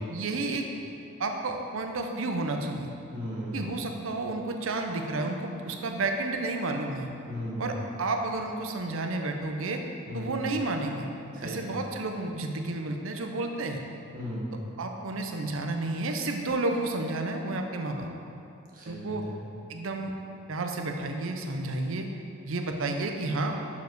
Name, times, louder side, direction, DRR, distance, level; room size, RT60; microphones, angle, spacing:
voice 1, 0.1-0.6 1.2-2.9 3.5-7.1 7.6-9.8 10.1-11.1 11.4-13.8 14.8-18.1 18.9-19.3 19.7-20.1 20.5-22.1 22.4-23.6, right 2 dB, 65° right, 4 dB, 0.6 m, -31 dB
voice 2, 3.1-3.8 7.3-7.8 10.1-10.4 11.3-11.7 14.1-14.5 18.7-19.4, equal, 40° right, -6 dB, 1.5 m, -36 dB
7.0 x 4.8 x 4.6 m, 2.7 s
head